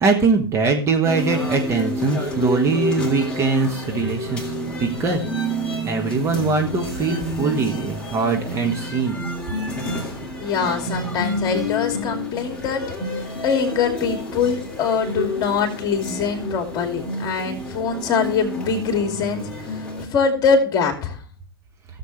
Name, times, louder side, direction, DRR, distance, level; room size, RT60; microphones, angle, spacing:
voice 1, 0.0-5.3 5.8-9.2, right 4 dB, 20° right, 2 dB, 1.5 m, -22 dB
sound 1, 1.0-20.0, equal, 5° left, 3.3 m, -29 dB
voice 2, 10.4-12.8 13.4-19.8 20.1-21.2, left 5 dB, 30° left, 4 dB, 2.6 m, -23 dB
16.5 x 7.5 x 3.3 m, 0.40 s
figure-of-eight pair, 100°, 13 cm